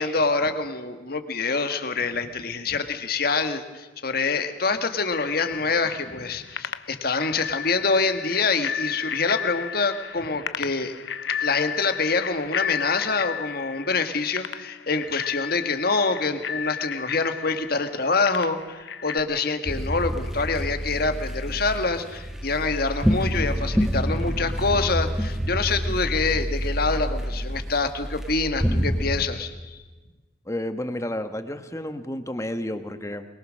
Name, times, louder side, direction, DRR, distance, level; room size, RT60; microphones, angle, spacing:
voice 1, 0.0-10.9 11.4-29.8, left 4 dB, 55° left, 8 dB, 1.6 m, -26 dB
Bicycle bell, 5.1-19.2, left 8 dB, 75° left, 0.7 m, -33 dB
sound 1, 19.6-29.3, equal, 5° right, 1.2 m, -27 dB
voice 2, 30.5-33.3, left 1 dB, 15° left, 9 dB, 1.2 m, -31 dB
23.0 x 22.0 x 6.4 m, 1.2 s
head